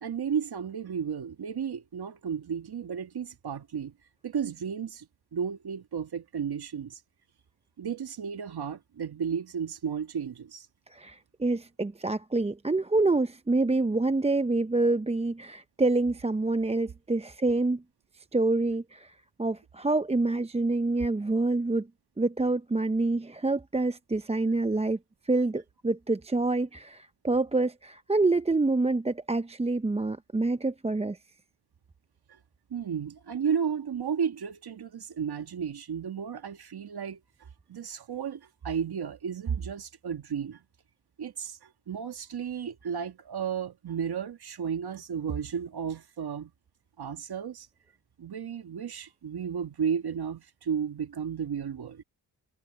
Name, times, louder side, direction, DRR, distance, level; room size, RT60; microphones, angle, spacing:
voice 1, 0.0-3.9 4.2-5.1 5.3-7.0 7.8-10.7 32.3-32.4 32.7-40.6 41.2-46.5 47.0-47.7 48.2-52.0, right 7 dB, 70° right, 1.9 m, -33 dB
voice 2, 10.9-17.8 18.1-21.9 22.2-25.0 25.2-31.2, right 2 dB, 15° right, 0.7 m, -27 dB
cardioid pair, 45°, 40 cm